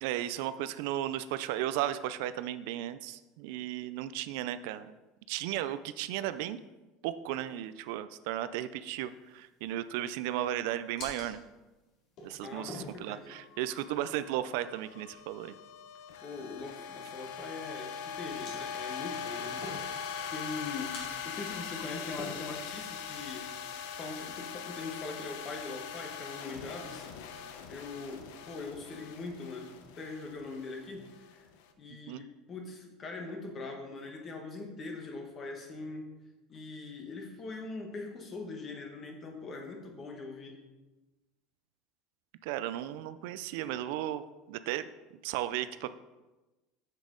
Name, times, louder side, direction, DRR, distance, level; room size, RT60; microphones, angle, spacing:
voice 1, 0.0-5.0 5.3-6.6 7.0-11.4 12.2-15.6 32.1-32.2 42.4-44.9 45.2-46.0, right 12 dB, 65° right, 13 dB, 0.3 m, -35 dB
sound 1, 9.0-24.4, left 2 dB, 45° left, 2.2 m, -51 dB
voice 2, 12.4-13.4 16.2-20.0 20.3-23.5 24.0-27.1 27.7-31.4 31.8-36.1 36.5-40.6, left 3 dB, 25° left, 3 dB, 1.1 m, -42 dB
sound 2, 13.3-31.6, left 7 dB, 75° left, 0.7 m, -42 dB
7.3 x 7.0 x 3.8 m, 1.1 s
cardioid pair, 170°, 0 cm